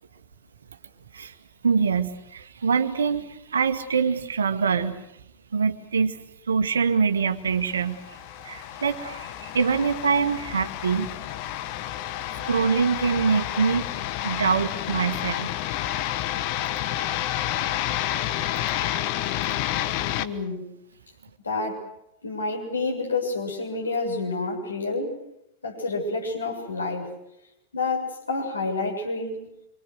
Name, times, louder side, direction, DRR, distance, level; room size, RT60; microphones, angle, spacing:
voice 1, 1.6-5.0 5.5-6.2 6.5-11.2 12.5-15.5 17.6-17.8 19.5-19.6, right 5 dB, 70° right, 9 dB, 1.8 m, -25 dB
sound 1, 7.7-20.3, left 13 dB, 45° left, 1.3 m, -30 dB
voice 2, 20.2-20.7 21.4-21.9 22.2-25.2 25.6-27.1 27.7-29.5, left 3 dB, 75° left, 0 dB, 6.9 m, -29 dB
27.0 x 25.5 x 6.6 m, 0.79 s
figure-of-eight pair, 90°, 0 cm